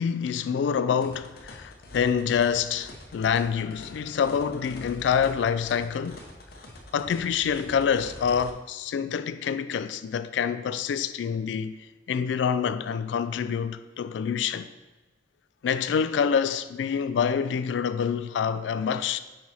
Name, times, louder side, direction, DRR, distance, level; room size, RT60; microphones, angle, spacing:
voice 1, 0.0-6.2 6.9-11.8 12.1-14.7 15.6-19.2, left 7 dB, 80° left, 0.3 m, -26 dB
sound 1, 1.0-8.5, left 1 dB, 55° left, 0.8 m, -45 dB
5.3 x 4.7 x 4.3 m
head